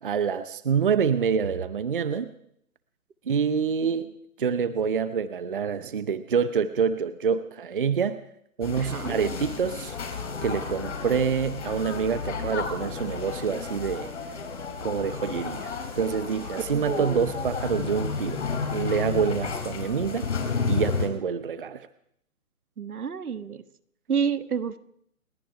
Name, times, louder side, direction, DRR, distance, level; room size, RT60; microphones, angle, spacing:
voice 1, 0.0-2.3 3.3-4.1 4.4-8.2 8.6-9.9 10.4-14.1 14.8-18.4 18.7-20.3 20.7-21.9, right 6 dB, 35° right, 13 dB, 0.7 m, -26 dB
sound 1, 8.6-21.1, left 5 dB, 50° left, 4.9 m, -32 dB
voice 2, 8.8-9.2 16.7-17.3 22.8-23.6 24.1-24.8, right 6 dB, 80° right, 13 dB, 1.4 m, -29 dB
29.5 x 10.0 x 4.9 m, 0.71 s
hypercardioid pair, 160°, 44 cm